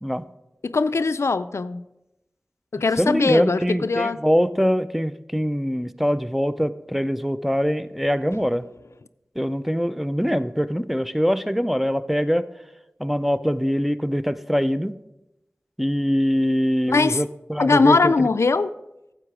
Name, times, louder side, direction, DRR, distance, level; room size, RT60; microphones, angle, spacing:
voice 1, 0.6-1.8 2.7-4.2 16.9-17.2 17.6-18.7, left 4 dB, 75° left, 13 dB, 0.4 m, -20 dB
voice 2, 3.0-8.7 9.4-12.5 13.0-14.9 15.8-18.3, equal, 5° right, 12 dB, 0.4 m, -23 dB
9.9 x 7.7 x 4.8 m, 0.92 s
wide cardioid pair, 45°, 5 cm